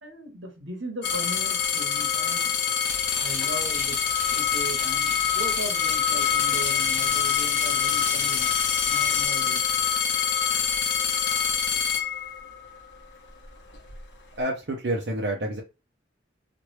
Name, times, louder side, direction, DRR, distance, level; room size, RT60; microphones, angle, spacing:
voice 1, 0.0-2.6 3.1-4.0 4.3-8.5 8.9-9.6, right 1 dB, 85° right, 3 dB, 1.1 m, -38 dB
sound 1, 1.0-12.8 13.5-14.0, left 7 dB, 65° left, 0.8 m, -25 dB
sound 2, 2.8-9.3, left 2 dB, 35° left, 1.1 m, -40 dB
voice 2, 14.4-15.6, right 1 dB, 60° right, -1 dB, 0.6 m, -28 dB
3.0 x 2.5 x 3.0 m, 0.29 s
head